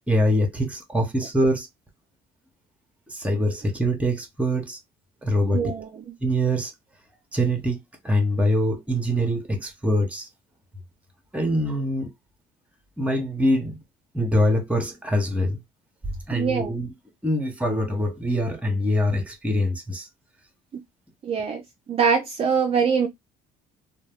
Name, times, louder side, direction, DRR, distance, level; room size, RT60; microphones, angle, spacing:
voice 1, 0.1-1.7 3.1-4.8 5.2-5.7 6.2-6.7 7.3-7.8 8.0-10.3 11.3-12.1 13.0-13.8 14.1-15.6 16.3-16.9 17.2-20.1, equal, 10° right, 0.9 m, -24 dB
voice 2, 5.5-6.1 16.3-16.7 21.2-21.6 21.9-23.1, right 6 dB, 35° right, 0.4 m, -23 dB
2.2 x 2.2 x 3.4 m
cardioid pair, 110°, 17 cm